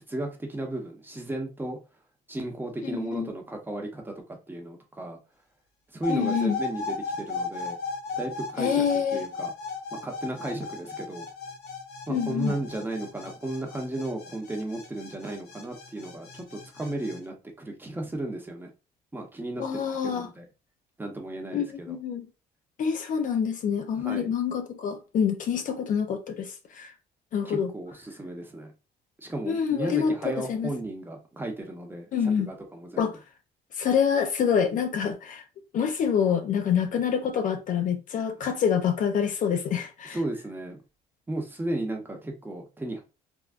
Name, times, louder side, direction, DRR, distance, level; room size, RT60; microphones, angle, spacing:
voice 1, 0.1-1.8 2.3-4.1 4.5-5.2 5.9-7.8 8.2-8.8 9.1-9.5 9.9-11.3 12.1-18.7 19.1-20.5 21.0-22.0 24.0-24.3 27.5-28.7 29.2-33.1 40.1-40.8 41.3-43.0, right 1 dB, 10° right, 0.8 m, -34 dB
voice 2, 2.8-3.3 6.1-6.6 8.6-9.3 12.1-12.6 19.6-20.3 21.5-22.3 22.8-26.9 27.3-27.7 29.5-30.7 32.1-32.5 33.0-33.2 33.7-35.4 35.7-40.2, left 7 dB, 50° left, 0.5 m, -26 dB
sound 1, 6.0-17.2, left 4 dB, 80° left, 1.0 m, -36 dB
3.5 x 2.3 x 2.4 m
cardioid pair, 110°, 17 cm